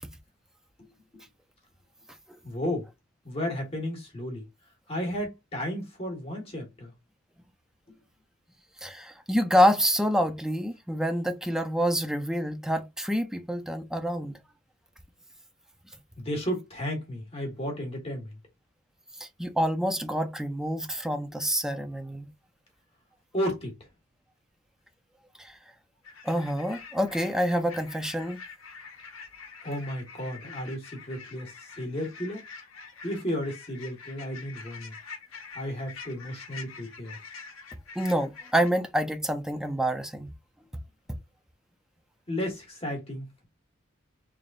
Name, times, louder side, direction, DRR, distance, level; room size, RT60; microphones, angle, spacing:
voice 1, 2.4-2.9 3.2-4.4 4.9-6.9 7.9-8.0 16.2-18.4 23.3-23.7 29.6-32.4 33.0-34.9 35.5-37.2 42.3-43.4, equal, 30° left, 1.5 m, -33 dB
voice 2, 8.8-14.3 19.2-22.3 25.4-25.5 26.2-28.4 38.0-40.3, equal, 5° right, 0.4 m, -27 dB
sound 1, 26.0-38.7, left 5 dB, 75° left, 0.9 m, -46 dB
3.8 x 3.3 x 2.5 m
head